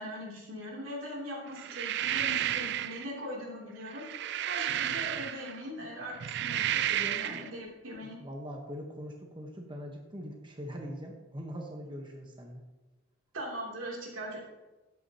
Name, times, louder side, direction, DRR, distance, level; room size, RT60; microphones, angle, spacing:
voice 1, 0.0-4.0 4.5-8.2 13.3-14.4, equal, 85° right, -2 dB, 3.0 m, -40 dB
sound 1, 1.6-3.1 3.9-5.6 6.1-7.5, right 11 dB, 60° right, 0.3 m, -32 dB
voice 2, 8.2-12.6, equal, 25° right, 1 dB, 1.1 m, -42 dB
12.5 x 9.4 x 2.9 m, 1.1 s
head